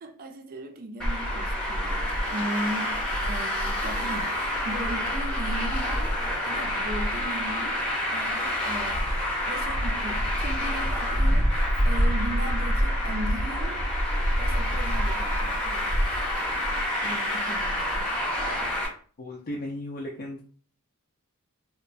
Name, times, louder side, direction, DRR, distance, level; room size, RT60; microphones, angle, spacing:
voice 1, 0.0-13.9 14.4-16.0 17.0-18.1, right 1 dB, 40° right, 0.4 m, -37 dB
Traffic noise roadway noise, 1.0-18.9, equal, 5° left, 0.7 m, -27 dB
voice 2, 19.2-20.4, left 1 dB, 40° left, 0.4 m, -35 dB
2.8 x 2.0 x 2.5 m
head